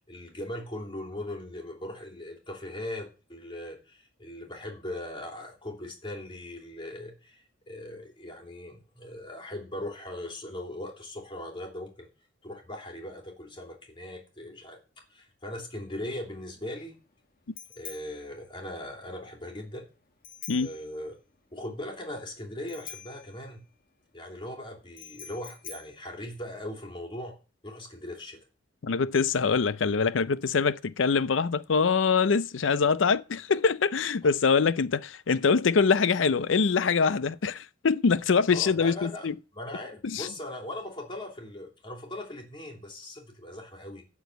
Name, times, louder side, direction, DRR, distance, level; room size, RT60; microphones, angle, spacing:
voice 1, 0.0-12.1 12.4-14.8 15.1-17.0 17.8-19.8 20.6-21.2 21.5-23.6 24.1-27.4 27.6-28.4 33.0-33.1 38.5-39.3 39.5-44.0, left 1 dB, 25° left, 3.1 m, -39 dB
Bicycle bell, 15.9-27.0, left 8 dB, 50° left, 1.6 m, -48 dB
voice 2, 28.8-39.3 40.0-40.3, left 5 dB, 70° left, 0.5 m, -24 dB
12.5 x 4.7 x 8.0 m
head